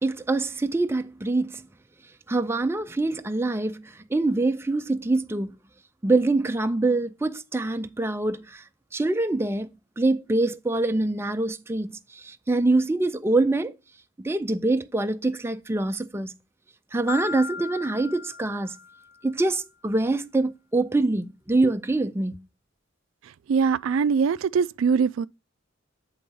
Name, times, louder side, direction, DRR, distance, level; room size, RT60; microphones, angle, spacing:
voice 1, 0.0-1.6 2.3-5.5 6.0-8.6 8.9-9.7 10.0-13.7 14.2-16.3 16.9-18.8 19.2-22.4, right 2 dB, 15° right, 0.4 m, -25 dB
Marimba xylophone, 17.1-19.3, left 5 dB, 70° left, 2.0 m, -37 dB
voice 2, 23.5-25.3, right 6 dB, 90° right, 0.3 m, -22 dB
8.4 x 3.5 x 5.3 m
head